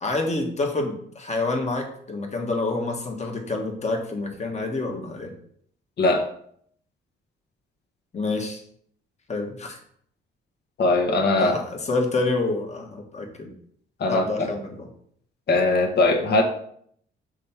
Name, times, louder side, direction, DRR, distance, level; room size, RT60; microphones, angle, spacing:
voice 1, 0.0-5.3 8.1-8.6 9.3-9.8 11.4-13.5 14.1-14.9, left 2 dB, 35° left, 2 dB, 1.5 m, -27 dB
voice 2, 10.8-11.6 14.0-14.5 15.5-16.4, left 2 dB, 55° left, 2 dB, 1.4 m, -20 dB
6.4 x 3.4 x 5.8 m, 0.65 s
cardioid pair, 90°, 20 cm